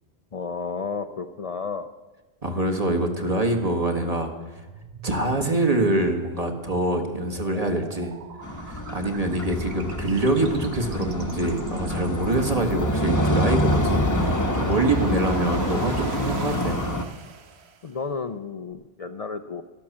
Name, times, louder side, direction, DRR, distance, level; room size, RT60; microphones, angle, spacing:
voice 1, 0.3-1.9 17.8-19.6, left 5 dB, 45° left, 8 dB, 0.5 m, -32 dB
voice 2, 2.4-4.6 5.0-8.1 8.6-16.8, right 2 dB, 35° right, 4 dB, 1.6 m, -25 dB
sound 1, 4.6-18.0, right 4 dB, 80° right, 1.2 m, -41 dB
sound 2, 8.4-17.0, left 1 dB, 20° left, 0.9 m, -26 dB
12.5 x 11.5 x 7.3 m, 1.2 s
omnidirectional pair, 1.1 m